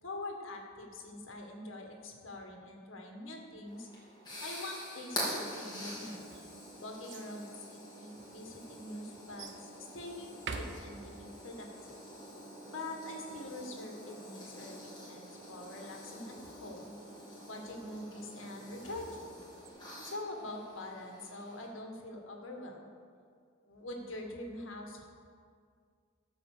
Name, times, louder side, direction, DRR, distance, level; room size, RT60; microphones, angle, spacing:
voice 1, 0.0-3.9 4.4-6.3 6.8-11.9 12.7-17.0 17.5-19.4 20.0-22.9 23.6-25.0, left 1 dB, 85° left, 1 dB, 1.8 m, -44 dB
sound 1, 3.7-21.7, equal, 20° left, 3.2 m, -46 dB
sound 2, 6.1-7.3 8.1-8.2 9.4-9.7 10.3-11.4 18.4-19.7, right 4 dB, 65° right, 0.8 m, -46 dB
13.0 x 5.3 x 6.8 m, 2.1 s
head